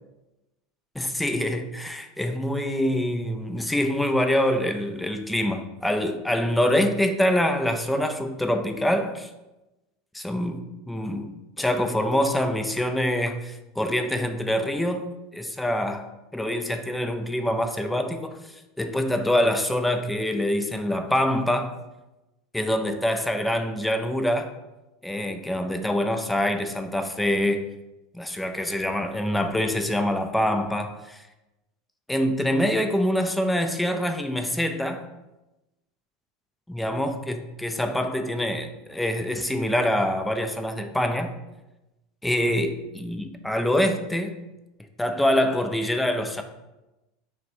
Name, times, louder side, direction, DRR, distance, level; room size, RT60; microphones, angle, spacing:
voice 1, 1.0-9.3 10.1-15.1 15.3-16.0 16.3-21.7 22.5-24.5 25.0-27.6 28.1-31.2 32.1-35.0 36.7-41.3 42.2-44.4 45.0-46.4, left 1 dB, 5° left, 6 dB, 0.3 m, -25 dB
3.1 x 3.0 x 4.3 m, 1.0 s
supercardioid pair, 135°, 0 cm